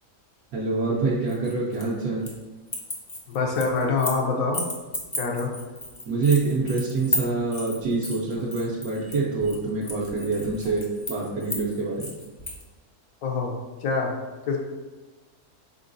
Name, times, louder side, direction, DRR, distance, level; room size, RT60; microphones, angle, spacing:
voice 1, 0.5-2.3 6.1-12.1, right 3 dB, 75° right, -5 dB, 1.1 m, -26 dB
sound 1, 1.3-2.4 2.7-4.2 4.5-12.6, left 1 dB, 40° left, 0.4 m, -33 dB
voice 2, 3.3-4.6 5.2-5.5 13.2-13.5 13.8-14.1 14.5-14.6, left 4 dB, 75° left, 0 dB, 1.1 m, -25 dB
4.4 x 3.8 x 2.5 m, 1.2 s
omnidirectional pair, 1.6 m